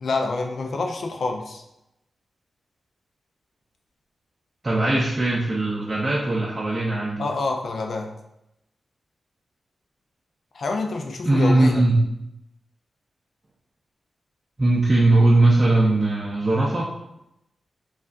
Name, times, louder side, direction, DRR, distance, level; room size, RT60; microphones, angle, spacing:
voice 1, 0.0-1.6 7.2-8.1 10.5-11.8, left 3 dB, 60° left, 3 dB, 0.5 m, -27 dB
voice 2, 4.6-7.3 11.2-12.0 14.6-16.9, right 2 dB, 25° right, -5 dB, 0.5 m, -19 dB
5.2 x 2.4 x 2.5 m, 0.85 s
wide cardioid pair, 125°, 0 cm